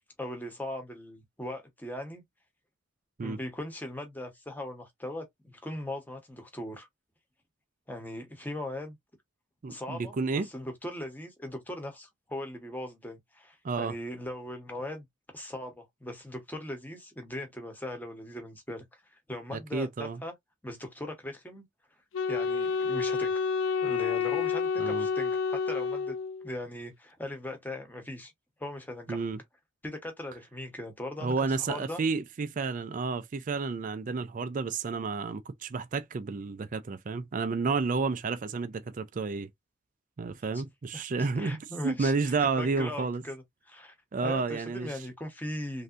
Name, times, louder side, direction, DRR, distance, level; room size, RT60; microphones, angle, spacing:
voice 1, 0.2-2.2 3.2-6.9 7.9-9.0 9.7-15.0 15.3-20.3 20.6-21.6 22.3-23.3 23.8-26.1 26.4-28.3 28.6-29.2 29.8-31.3 31.7-32.0 40.5-40.7 40.9-43.9 44.2-45.8, left 1 dB, 10° left, 0.9 m, -39 dB
voice 2, 9.6-10.5 13.6-13.9 19.5-20.2 24.8-25.1 29.1-29.4 31.2-39.5 40.2-43.2 44.1-45.0, right 4 dB, 40° right, 0.4 m, -31 dB
Wind instrument woodwind instrument, 22.1-26.6, left 5 dB, 70° left, 0.5 m, -29 dB
3.3 x 2.7 x 2.4 m
head